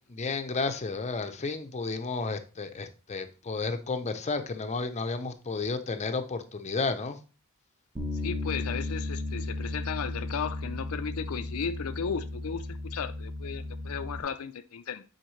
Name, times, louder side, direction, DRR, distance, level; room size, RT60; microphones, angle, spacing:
voice 1, 0.1-7.2, left 4 dB, 30° left, 0.6 m, -32 dB
Bass guitar, 8.0-14.2, left 2 dB, 25° right, 1.0 m, -35 dB
voice 2, 8.2-15.0, left 6 dB, 80° left, 0.5 m, -35 dB
9.1 x 4.3 x 3.2 m
head